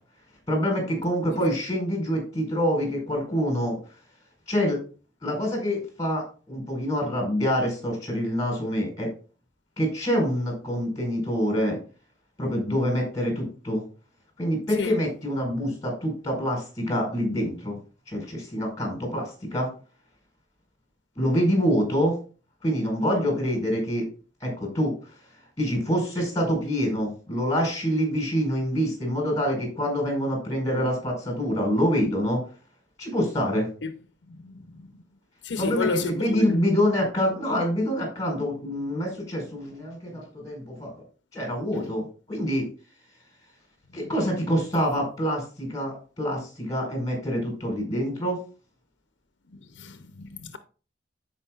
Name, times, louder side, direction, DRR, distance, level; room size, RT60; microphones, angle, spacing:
voice 1, 0.5-3.8 4.5-4.8 5.2-9.1 9.8-11.8 12.4-13.8 14.4-17.8 18.1-19.7 21.1-22.1 22.6-24.1 24.4-24.9 25.6-32.4 33.0-33.7 35.6-40.9 41.3-42.6 43.9-48.4, equal, 20° left, 4.6 m, -26 dB
voice 2, 34.3-34.9 35.4-36.6 49.5-50.6, left 3 dB, 85° left, 0.7 m, -31 dB
14.5 x 5.2 x 2.4 m
head